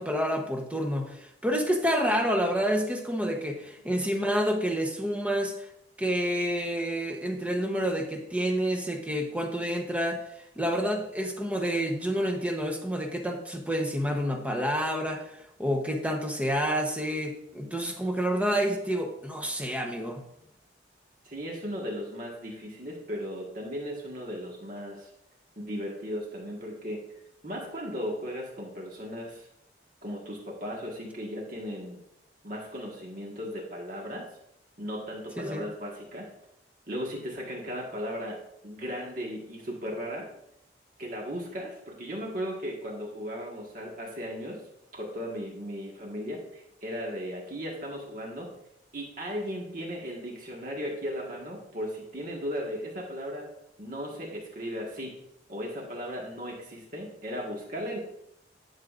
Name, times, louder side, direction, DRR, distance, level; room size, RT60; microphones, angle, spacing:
voice 1, 0.0-5.7 6.0-20.2 35.4-35.7, equal, 10° right, 2 dB, 0.9 m, -29 dB
voice 2, 21.2-25.1 25.6-27.0 27.4-29.5 30.0-32.0 32.4-34.3 34.8-36.3 36.9-38.4 38.6-40.3 41.0-44.6 44.9-48.5 48.9-53.5 53.8-55.2 55.5-58.0, equal, 45° right, -1 dB, 1.6 m, -36 dB
11.0 x 7.3 x 2.5 m, 0.78 s
head